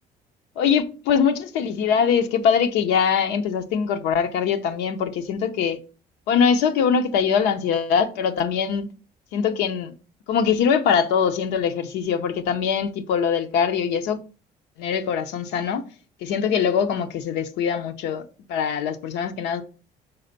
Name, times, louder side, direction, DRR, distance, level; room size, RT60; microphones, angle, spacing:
voice 1, 0.6-5.8 6.3-8.9 9.3-9.9 10.3-14.2 14.8-15.8 16.2-18.2 18.5-19.6, left 7 dB, 90° left, 0.7 m, -22 dB
5.5 x 4.3 x 3.9 m
cardioid pair, 110°, 17 cm